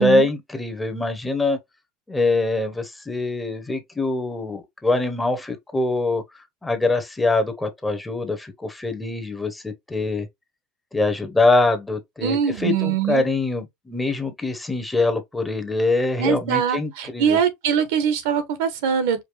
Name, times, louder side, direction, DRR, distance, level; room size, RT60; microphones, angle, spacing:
voice 1, 0.0-1.6 2.1-10.3 10.9-17.4, left 2 dB, 10° left, 0.9 m, -23 dB
voice 2, 12.2-13.2 16.2-19.2, right 8 dB, 80° right, 1.0 m, -22 dB
5.1 x 2.2 x 3.3 m
supercardioid pair, 125°, 0 cm